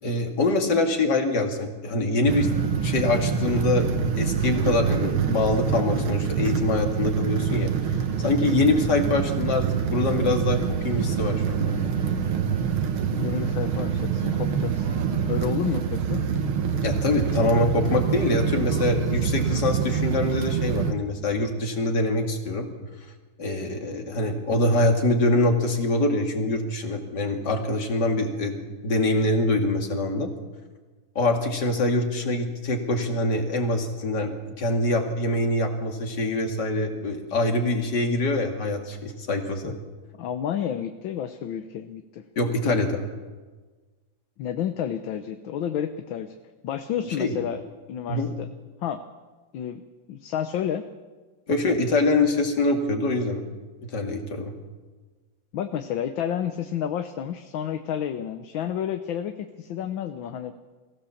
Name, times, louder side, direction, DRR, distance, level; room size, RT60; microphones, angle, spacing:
voice 1, 0.0-3.9 4.2-11.9 16.3-16.5 16.8-22.7 23.4-28.6 28.8-30.3 31.2-39.8 42.4-43.0 47.2-47.4 48.1-48.3 51.5-53.4 53.8-54.5, left 2 dB, 55° left, 4 dB, 2.8 m, -24 dB
sound 1, 2.3-20.9, right 7 dB, 85° right, 2.1 m, -26 dB
voice 2, 13.2-15.0 15.2-16.2 39.6-39.8 40.2-42.2 44.4-46.3 46.6-47.6 47.9-48.5 48.8-49.0 49.5-49.8 50.1-50.8 55.5-60.5, left 9 dB, 75° left, 8 dB, 1.6 m, -30 dB
23.0 x 16.0 x 7.2 m, 1.3 s
omnidirectional pair, 2.2 m